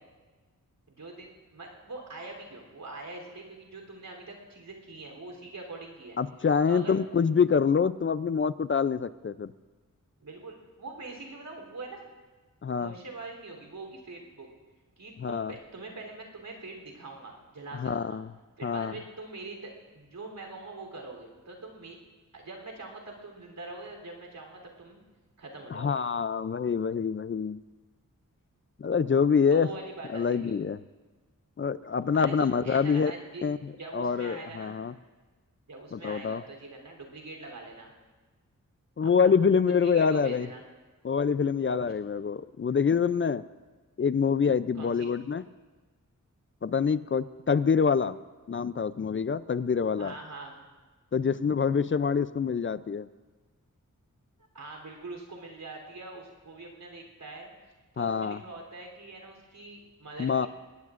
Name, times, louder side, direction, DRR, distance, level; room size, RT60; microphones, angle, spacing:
voice 1, 0.9-6.2 6.7-6.9 10.2-12.0 12.8-14.5 15.0-18.2 18.6-22.0 22.3-25.0 25.4-26.0 29.5-30.6 32.1-33.4 33.8-34.8 35.7-37.9 39.0-39.3 39.7-40.6 44.7-45.1 50.0-50.6 54.5-57.5 57.9-60.5, right 3 dB, 90° right, 1 dB, 3.5 m, -43 dB
voice 2, 6.2-9.5 12.6-12.9 15.2-15.5 17.7-18.3 18.6-18.9 25.7-27.6 28.8-29.7 30.1-30.8 31.6-33.1 33.4-34.9 35.9-36.4 39.0-40.5 41.0-43.4 44.0-45.4 46.6-48.2 48.5-50.1 51.1-53.1 58.0-58.4 60.2-60.5, left 6 dB, 40° left, 15 dB, 0.4 m, -26 dB
22.0 x 19.0 x 2.5 m, 1.3 s
wide cardioid pair, 100°, 33 cm